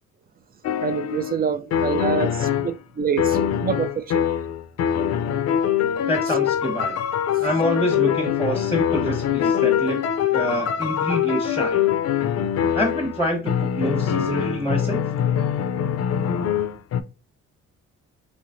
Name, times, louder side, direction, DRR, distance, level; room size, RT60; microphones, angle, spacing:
sound 1, 0.6-1.4 1.7-2.8 3.2-17.0, left 9 dB, 55° left, 0.5 m, -23 dB
voice 1, 0.8-4.2, right 6 dB, 30° right, 0.4 m, -26 dB
voice 2, 6.1-7.0 7.4-10.0 10.3-11.8 12.7-15.1, equal, 10° right, 1.1 m, -26 dB
3.2 x 3.1 x 2.5 m
cardioid pair, 90°, 30 cm